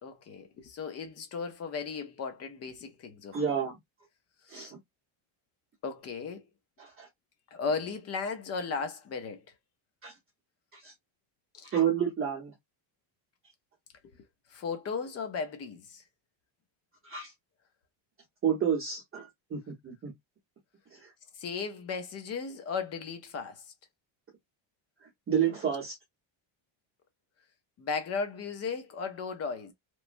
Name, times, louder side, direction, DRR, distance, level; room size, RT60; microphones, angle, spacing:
voice 1, 0.0-3.4 4.5-4.7 5.8-6.5 7.5-9.4 11.5-11.7 14.0-14.1 14.5-16.0 21.4-23.7 27.8-29.7, left 5 dB, 30° left, 0.5 m, -36 dB
voice 2, 3.3-3.7 4.5-4.8 6.8-7.1 10.0-10.1 10.7-10.9 11.6-12.5 17.0-17.3 18.4-20.1 20.9-21.1 25.0-26.0, right 8 dB, 25° right, 0.9 m, -30 dB
3.1 x 2.1 x 2.5 m
cardioid pair, 175°, 49 cm